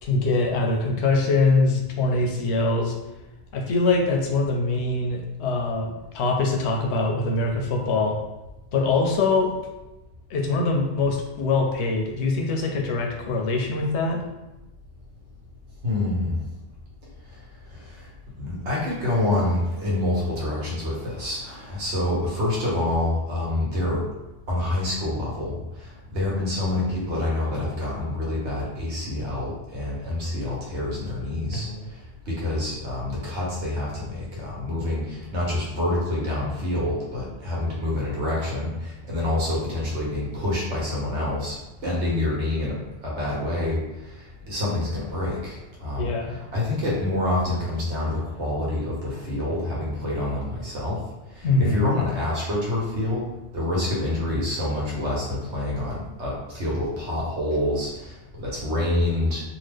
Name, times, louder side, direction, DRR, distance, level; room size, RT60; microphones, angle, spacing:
voice 1, 0.0-3.0 3.5-8.2 8.7-9.5 10.3-14.2 31.5-31.9 46.0-46.3 51.4-52.0, left 3 dB, 80° left, 1 dB, 0.9 m, -23 dB
voice 2, 15.8-16.4 18.4-24.0 24.5-25.5 26.1-31.7 32.3-41.6 41.8-43.8 44.5-46.1 46.5-51.0 51.4-53.2 53.5-59.4, left 1 dB, 85° right, -4 dB, 1.3 m, -27 dB
2.9 x 2.2 x 3.4 m, 1.0 s
omnidirectional pair, 1.1 m